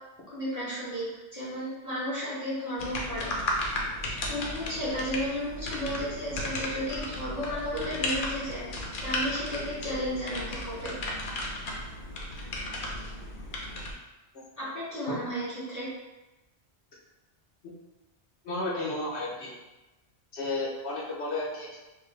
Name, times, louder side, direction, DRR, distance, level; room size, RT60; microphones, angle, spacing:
voice 1, 0.3-3.5 4.3-8.7 9.0-10.9 14.6-15.9, equal, 35° left, -10 dB, 1.2 m, -33 dB
sound 1, 2.8-13.9, left 1 dB, 55° left, 0.7 m, -34 dB
voice 2, 18.4-19.5 20.3-21.8, left 2 dB, 85° left, -5 dB, 1.3 m, -33 dB
4.7 x 2.1 x 3.3 m, 1.1 s
omnidirectional pair, 1.1 m